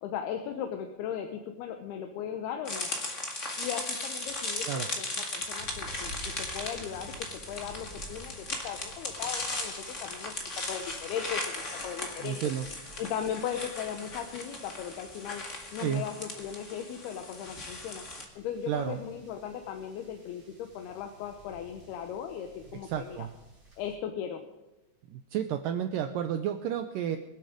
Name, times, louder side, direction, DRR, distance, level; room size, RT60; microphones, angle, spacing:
voice 1, 0.0-2.9 3.6-10.3 10.7-12.4 13.0-15.4 15.7-18.0 18.4-23.2 23.8-24.4, left 9 dB, 80° left, 6 dB, 2.8 m, -37 dB
sound 1, 2.6-18.2, left 2 dB, 40° left, 1.1 m, -37 dB
sound 2, 5.6-23.9, right 1 dB, 20° right, 4.1 m, -52 dB
voice 2, 12.2-12.7 15.8-16.0 18.7-19.0 22.8-23.3 25.1-27.2, right 10 dB, 80° right, 7 dB, 2.0 m, -31 dB
24.5 x 8.3 x 5.1 m, 1.1 s
omnidirectional pair, 4.7 m